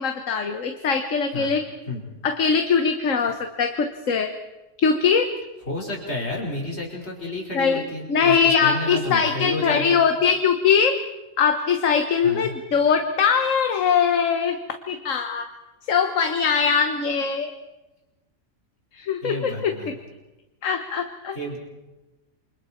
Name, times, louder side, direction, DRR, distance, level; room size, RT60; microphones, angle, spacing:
voice 1, 0.0-1.6 2.2-4.3 4.8-5.3 7.5-7.8 8.1-11.0 11.4-14.6 14.9-15.5 15.9-17.5 18.9-19.9 20.6-21.3, left 6 dB, 65° left, 7 dB, 1.5 m, -21 dB
voice 2, 5.7-10.0 12.2-12.5 19.2-19.9 21.3-21.6, left 1 dB, 50° left, -2 dB, 5.2 m, -30 dB
28.5 x 25.0 x 4.4 m, 1.1 s
omnidirectional pair, 1.5 m